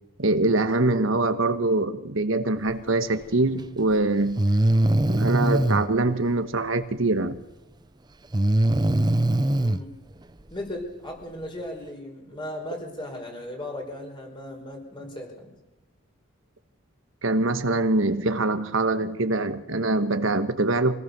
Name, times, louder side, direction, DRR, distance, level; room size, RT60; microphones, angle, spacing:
voice 1, 0.2-4.4 5.1-7.4 17.2-21.0, right 2 dB, 70° right, 9 dB, 1.4 m, -24 dB
Breathing, 3.5-3.6 4.4-5.9 8.3-9.8, right 1 dB, 20° right, 0.7 m, -21 dB
voice 2, 9.6-9.9 10.5-15.5, left 1 dB, 25° left, 2 dB, 5.2 m, -36 dB
25.0 x 18.0 x 6.9 m, 1.1 s
head